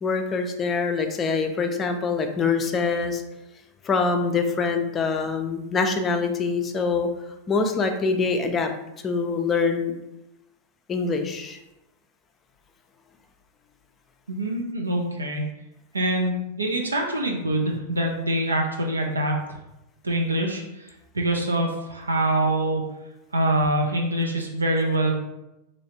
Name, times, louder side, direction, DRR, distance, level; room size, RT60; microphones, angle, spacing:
voice 1, 0.0-3.2 3.8-7.1 7.5-8.7 9.0-9.9 10.9-11.6, left 4 dB, 20° left, 5 dB, 0.4 m, -24 dB
voice 2, 14.3-15.4 15.9-19.6 20.0-22.8 23.3-25.1, right 1 dB, 75° right, 1 dB, 0.5 m, -25 dB
3.1 x 2.8 x 2.7 m, 0.91 s
figure-of-eight pair, 90°, 0 cm